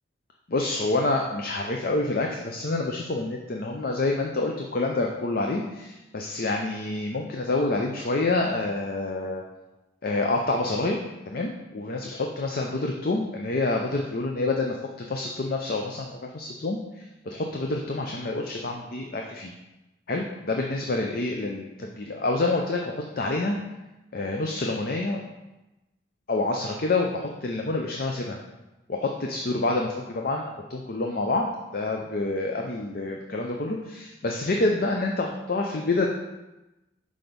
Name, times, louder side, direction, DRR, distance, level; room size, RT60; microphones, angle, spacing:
voice 1, 0.5-9.4 10.0-11.0 11.3-14.8 15.1-19.5 20.1-23.6 24.1-25.2 26.3-28.4 28.9-36.1, left 2 dB, 45° left, 2 dB, 0.5 m, -27 dB
6.0 x 4.9 x 5.2 m, 1.0 s
head